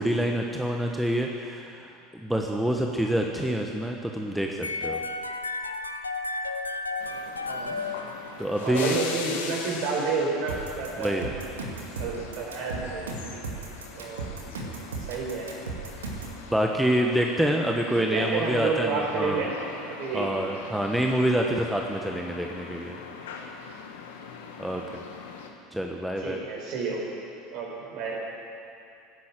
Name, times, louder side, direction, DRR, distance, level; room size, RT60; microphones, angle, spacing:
voice 1, 0.0-1.9 2.2-5.0 8.4-8.9 11.0-11.3 16.5-19.4 20.1-23.0 24.6-24.8 25.7-26.4, right 1 dB, 5° right, 1 dB, 1.3 m, -26 dB
sound 1, 4.6-8.7, left 3 dB, 85° left, 0.6 m, -33 dB
sound 2, 7.0-25.5, left 5 dB, 65° left, 1.5 m, -42 dB
voice 2, 7.5-7.8 8.6-11.5 12.0-13.4 13.9-14.3 15.0-15.5 17.9-19.5 19.8-20.3 26.2-27.0 27.5-28.2, right 4 dB, 55° right, -2 dB, 5.0 m, -30 dB
sound 3, 10.5-16.4, right 4 dB, 75° right, 2.1 m, -36 dB
18.5 x 10.5 x 7.6 m, 2.6 s
figure-of-eight pair, 75°, 0 cm